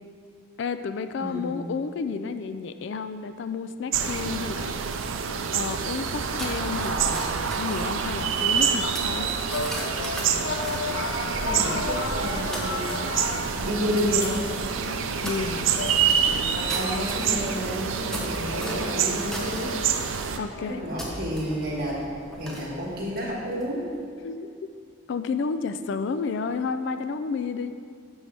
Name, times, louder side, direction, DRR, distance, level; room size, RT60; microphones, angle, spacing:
voice 1, 0.6-4.8 5.5-9.3 15.2-15.7 20.4-20.8 24.2-24.5 25.1-27.7, left 5 dB, 60° left, 10 dB, 0.3 m, -31 dB
voice 2, 1.2-1.5 11.4-13.3 13.6-14.4 16.2-16.4 16.7-19.8 20.3-22.0 22.4-23.8, equal, 45° right, -4 dB, 1.7 m, -31 dB
sound 1, 3.9-20.4, right 7 dB, 75° right, 0.5 m, -27 dB
sound 2, 6.1-23.9, equal, 5° left, 0.8 m, -39 dB
sound 3, 8.3-21.0, left 3 dB, 85° left, 0.7 m, -35 dB
11.5 x 5.5 x 3.4 m, 2.3 s
head